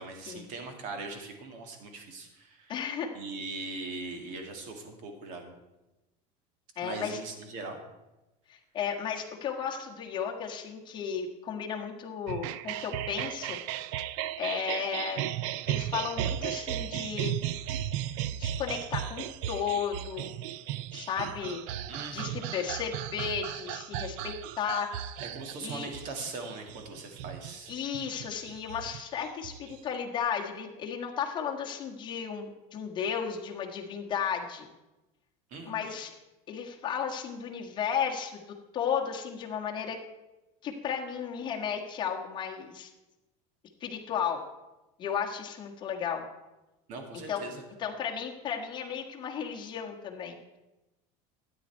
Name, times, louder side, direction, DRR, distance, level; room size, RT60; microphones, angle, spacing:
voice 1, 0.0-2.7 3.1-5.5 6.8-7.8 21.9-22.5 25.2-27.7 35.5-35.7 46.9-47.6, right 3 dB, 45° right, 4 dB, 2.0 m, -40 dB
voice 2, 2.7-3.1 6.8-7.2 8.5-13.6 14.4-15.3 15.7-17.4 18.4-20.3 20.9-21.6 22.1-25.1 25.6-25.9 27.7-34.7 35.7-36.1 36.5-38.4 38.7-40.0 40.6-42.9 43.8-44.4 45.0-46.2 47.3-47.4 47.8-50.4, left 7 dB, 25° left, 0 dB, 1.5 m, -34 dB
sound 1, 12.3-29.9, right 12 dB, 65° right, 0.5 m, -36 dB
13.0 x 9.4 x 4.5 m, 1.0 s
cardioid pair, 165°, 17 cm